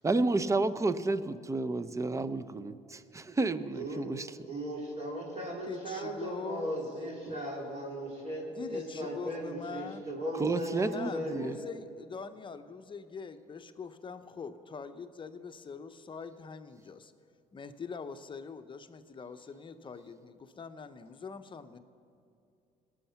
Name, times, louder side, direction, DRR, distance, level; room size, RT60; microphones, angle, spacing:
voice 1, 0.0-4.3 10.4-11.6, right 3 dB, 20° right, 13 dB, 0.6 m, -31 dB
voice 2, 3.7-4.1 4.4-11.5, equal, 40° right, -2 dB, 3.5 m, -37 dB
voice 3, 5.7-6.7 8.5-10.0 10.8-17.1 17.5-21.8, left 5 dB, 30° left, 9 dB, 0.7 m, -43 dB
19.0 x 6.4 x 5.7 m, 2.7 s
supercardioid pair, 85°, 16 cm